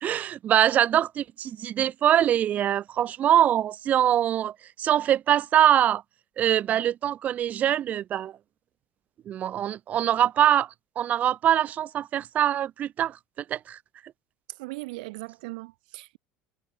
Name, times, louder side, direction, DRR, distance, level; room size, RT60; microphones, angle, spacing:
voice 1, 0.0-4.5 4.8-6.0 6.4-8.3 9.3-10.7 11.0-13.2 13.5-13.8, right 11 dB, 35° right, 0.6 m, -23 dB
voice 2, 14.6-16.2, right 24 dB, 85° right, 0.8 m, -38 dB
cardioid pair, 145°, 4 cm